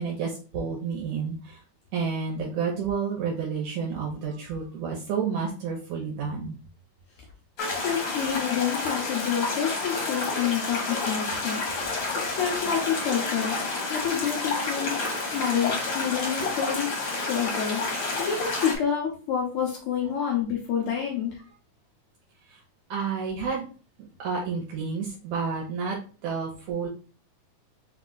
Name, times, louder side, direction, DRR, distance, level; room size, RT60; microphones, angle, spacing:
voice 1, 0.0-1.6 1.9-6.5 22.9-23.7 24.2-26.0 26.2-26.9, right 5 dB, 75° right, -1 dB, 2.1 m, -30 dB
voice 2, 7.6-11.6 12.4-13.6 13.9-14.9 15.3-16.9 17.3-17.8 18.2-21.4, left 8 dB, 80° left, 1 dB, 1.2 m, -28 dB
sound 1, 7.6-18.8, left 3 dB, 55° left, 1.1 m, -30 dB
4.8 x 2.4 x 3.9 m, 0.37 s
omnidirectional pair, 3.4 m